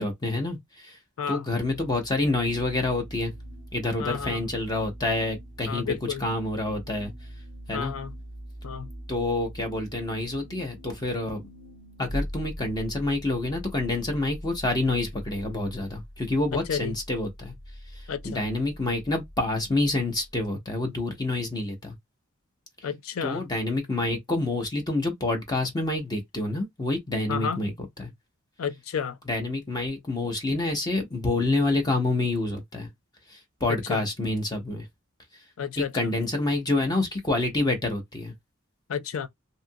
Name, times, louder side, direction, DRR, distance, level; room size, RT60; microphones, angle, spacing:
voice 1, 0.0-1.0 1.3-3.3 3.7-5.9 6.2-7.1 7.7-7.9 9.1-11.4 12.0-17.5 17.9-21.9 23.2-27.7 28.0-28.1 29.3-32.9 33.3-34.9 35.8-38.3, left 2 dB, 20° left, 0.7 m, -27 dB
sound 1, 1.6-20.5, equal, 45° left, 1.4 m, -42 dB
voice 2, 4.0-4.5 5.7-6.3 7.7-8.1 8.6-8.9 16.5-16.9 18.1-18.4 22.8-23.4 27.3-27.6 28.6-29.2 33.7-34.0 35.6-36.1 38.9-39.3, left 7 dB, 75° left, 0.4 m, -31 dB
2.7 x 2.5 x 2.6 m
head